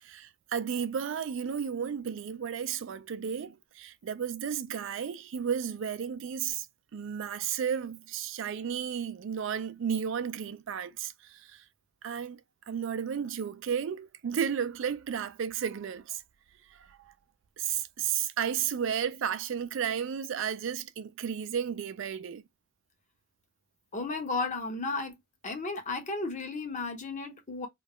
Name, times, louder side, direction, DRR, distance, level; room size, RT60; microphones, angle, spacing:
voice 1, 0.0-6.7 6.9-11.6 12.0-12.4 12.7-16.2 16.7-17.0 17.6-22.4, right 8 dB, 65° right, 0.3 m, -33 dB
voice 2, 23.9-25.1 25.4-27.7, left 3 dB, 35° left, 0.7 m, -34 dB
2.3 x 2.1 x 3.4 m
head